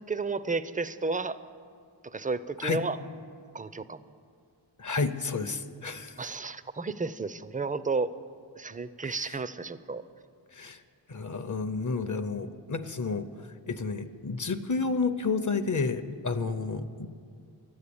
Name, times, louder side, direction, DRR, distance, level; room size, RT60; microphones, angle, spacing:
voice 1, 0.0-1.4 2.0-3.0 3.5-4.0 6.2-8.1 8.6-10.0, right 4 dB, 20° right, 14 dB, 0.4 m, -32 dB
voice 2, 4.8-6.1 9.1-9.3 10.5-10.8 11.1-13.3 13.7-17.1, left 4 dB, 40° left, 10 dB, 0.6 m, -31 dB
12.5 x 9.6 x 8.5 m, 2.3 s
wide cardioid pair, 75°, 46 cm